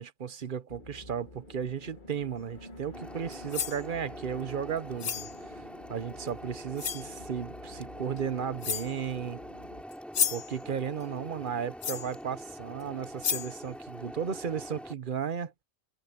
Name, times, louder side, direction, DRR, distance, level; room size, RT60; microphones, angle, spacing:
voice 1, 0.0-5.6 5.9-9.4 10.3-15.5, right 7 dB, 55° right, 1.1 m, -35 dB
sound 1, 0.7-9.8, left 1 dB, 45° left, 2.5 m, -50 dB
sound 2, 2.9-14.9, equal, ahead, 7.1 m, -44 dB
sound 3, 3.3-3.8 5.0-5.3 6.3-6.4 6.8-7.1 8.2-8.3 8.6-9.0 9.9-10.5 11.8-12.1 12.8-12.9 13.2-13.6, left 7 dB, 65° left, 1.1 m, -31 dB
omnidirectional pair, 1.1 m